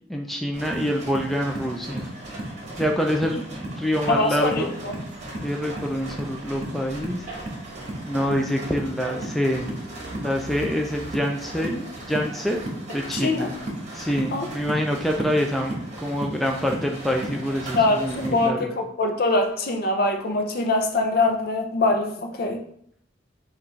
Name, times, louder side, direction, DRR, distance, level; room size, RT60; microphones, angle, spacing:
voice 1, 0.1-2.1 2.8-4.8 5.4-7.3 8.1-9.7 10.1-12.6 12.9-13.5 13.9-18.8, equal, ahead, 1 dB, 0.3 m, -26 dB
sound 1, 0.5-18.5, right 1 dB, 40° right, 1.1 m, -35 dB
voice 2, 4.1-5.0 13.1-13.5 14.3-14.5 17.8-22.6, left 2 dB, 55° left, 4 dB, 0.6 m, -23 dB
5.8 x 2.5 x 3.0 m, 0.66 s
head